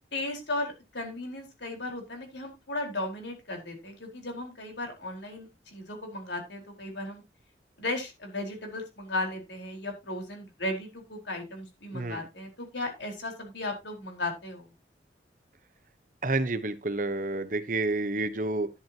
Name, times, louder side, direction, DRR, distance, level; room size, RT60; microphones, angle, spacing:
voice 1, 0.1-7.2 7.8-14.7, left 2 dB, 80° left, 4.3 m, -36 dB
voice 2, 16.2-18.7, right 2 dB, 45° right, 1.0 m, -29 dB
11.0 x 10.5 x 2.9 m
head